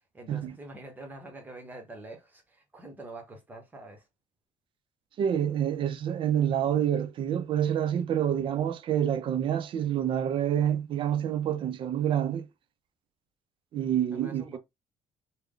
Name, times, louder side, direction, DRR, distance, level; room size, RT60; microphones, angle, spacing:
voice 1, 0.1-4.1 14.1-14.6, right 2 dB, 15° right, 0.9 m, -45 dB
voice 2, 5.2-12.5 13.7-14.6, right 10 dB, 45° right, 0.4 m, -27 dB
3.3 x 2.1 x 3.7 m
cardioid pair, 160°, 12 cm